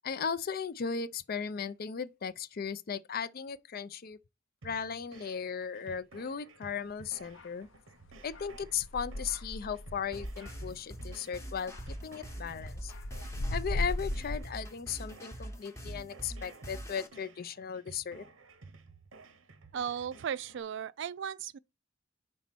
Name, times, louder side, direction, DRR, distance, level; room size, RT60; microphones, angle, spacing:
voice 1, 0.0-4.2 4.6-7.7 8.2-11.7 12.0-12.9 13.5-18.2, left 6 dB, 50° left, 0.4 m, -36 dB
sound 1, 4.6-20.6, right 3 dB, 90° right, 0.9 m, -54 dB
sound 2, 7.3-7.5 8.1-11.1 11.5-14.4, left 1 dB, 80° left, 0.8 m, -37 dB
sound 3, 10.1-17.1, equal, 15° left, 0.9 m, -44 dB
voice 2, 19.7-21.6, right 8 dB, 65° right, 0.3 m, -36 dB
5.4 x 4.1 x 6.0 m
head